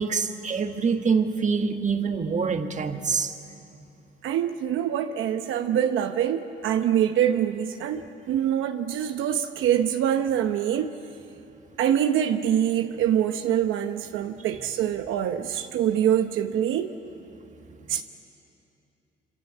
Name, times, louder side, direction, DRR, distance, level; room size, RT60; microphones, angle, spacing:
voice 1, 0.0-3.3, right 5 dB, 40° right, 6 dB, 1.6 m, -25 dB
voice 2, 4.2-11.0 11.8-16.9 17.9-18.0, right 10 dB, 85° right, 7 dB, 0.9 m, -25 dB
26.5 x 26.0 x 8.3 m, 2.8 s
cardioid pair, 90°, 20 cm